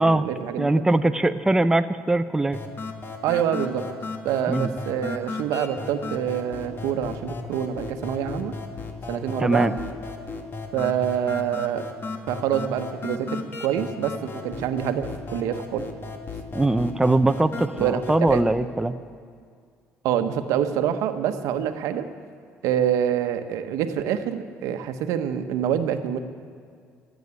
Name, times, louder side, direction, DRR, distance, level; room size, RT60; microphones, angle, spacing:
voice 1, 0.0-0.7 3.2-3.8 4.2-8.5 9.1-9.7 10.7-11.8 12.3-15.8 17.8-18.0 18.3-18.4 20.0-22.0 22.6-26.2, right 9 dB, 80° right, 8 dB, 1.0 m, -26 dB
voice 2, 0.6-2.6 4.5-4.7 9.4-9.7 16.5-19.0, right 2 dB, 10° right, 9 dB, 0.6 m, -21 dB
sound 1, 2.5-18.5, left 3 dB, 40° left, 1.7 m, -35 dB
15.0 x 8.2 x 9.7 m, 2.2 s
supercardioid pair, 75°, 6 cm